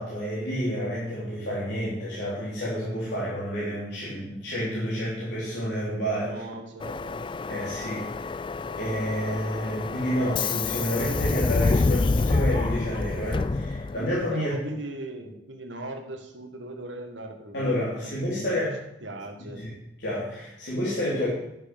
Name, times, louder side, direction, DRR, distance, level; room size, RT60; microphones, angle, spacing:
voice 1, 0.0-6.4 7.5-8.3 8.7-14.5 17.5-18.7 19.5-19.7 20.0-21.3, equal, 65° left, -8 dB, 3.4 m, -29 dB
voice 2, 6.2-7.2 14.3-18.7 19.0-19.7, right 2 dB, 80° right, 4 dB, 1.9 m, -39 dB
Subway metro underground, 6.8-14.2, left 3 dB, 25° left, 0.3 m, -27 dB
11.0 x 6.4 x 6.9 m, 0.87 s
head